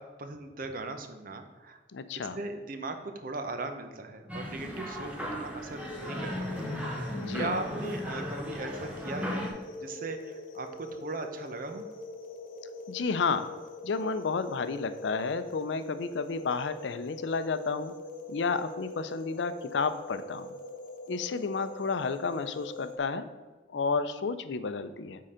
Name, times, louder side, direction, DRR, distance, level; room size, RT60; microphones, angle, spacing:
voice 1, 0.0-1.8 2.4-6.8 7.1-9.4 9.8-11.9, right 2 dB, 50° right, 7 dB, 0.7 m, -38 dB
voice 2, 1.9-2.4 7.1-7.6 12.9-13.5 13.8-17.9 18.3-20.5 21.1-23.3 23.7-25.2, left 4 dB, 85° left, 11 dB, 0.5 m, -31 dB
sound 1, 4.3-9.5, equal, 5° right, 1.0 m, -36 dB
sound 2, 5.7-23.0, left 2 dB, 50° left, 0.8 m, -43 dB
8.6 x 3.8 x 5.0 m, 1.3 s
head